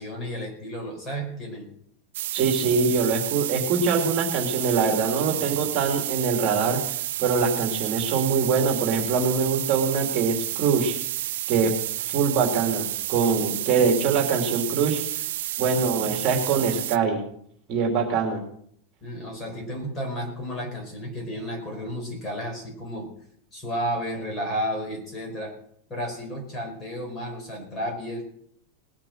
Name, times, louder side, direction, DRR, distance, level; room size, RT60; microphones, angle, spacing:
voice 1, 0.0-1.7 19.0-23.1 23.5-25.5 25.9-28.2, equal, 20° left, 1 dB, 4.5 m, -32 dB
sound 1, 2.1-17.0, right 14 dB, 75° right, 0.6 m, -30 dB
voice 2, 2.3-11.0 11.5-11.7 12.0-15.0 15.6-17.2 17.7-18.4, right 5 dB, 35° right, 2 dB, 2.8 m, -23 dB
19.5 x 7.5 x 6.5 m, 0.66 s
supercardioid pair, 160°, 0 cm